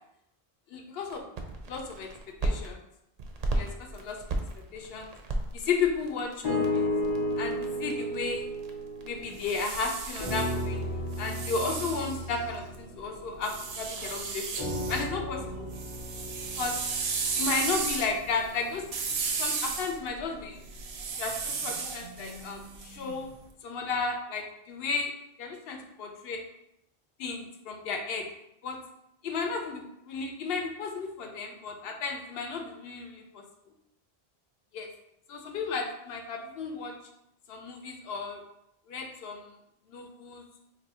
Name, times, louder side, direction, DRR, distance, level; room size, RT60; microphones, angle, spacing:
voice 1, 0.7-1.2 1.7-2.1 2.4-2.8 3.5-4.2 4.7-5.1 5.5-6.9 7.4-8.5 9.0-10.8 11.2-14.6 14.9-15.7 16.6-16.8 17.4-18.8 19.4-20.6 21.2-23.3 23.6-25.1 25.4-26.4 27.2-28.3 28.6-28.8 29.2-33.4 34.7-34.9 35.3-36.9 37.5-38.4 38.9-39.5 39.9-40.4, left 4 dB, 70° left, 3 dB, 0.8 m, -33 dB
sound 1, 1.1-2.7 3.2-11.2, right 1 dB, 55° right, 0.5 m, -37 dB
sound 2, 6.4-9.8 10.2-13.9 14.6-18.8 19.4-19.5, left 1 dB, 30° left, 0.6 m, -34 dB
sound 3, 9.2-12.7 13.4-15.1 15.4-23.3, right 5 dB, 90° right, 0.9 m, -35 dB
2.7 x 2.6 x 4.2 m, 0.82 s
omnidirectional pair, 1.0 m